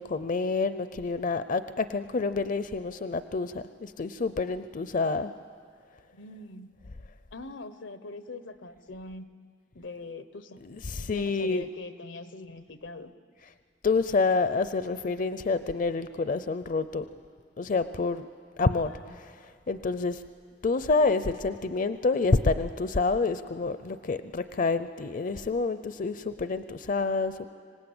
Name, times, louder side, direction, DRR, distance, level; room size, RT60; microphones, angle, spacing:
voice 1, 0.0-5.3 10.6-11.6 13.8-17.1 17.6-18.2 18.6-19.3 19.7-20.2 20.6-27.5, left 3 dB, 45° left, 12 dB, 0.6 m, -28 dB
voice 2, 6.1-6.7 7.3-9.3 9.7-10.6 11.1-13.1 18.8-19.1, left 2 dB, 90° left, 11 dB, 1.1 m, -42 dB
25.0 x 18.5 x 8.8 m, 2.1 s
head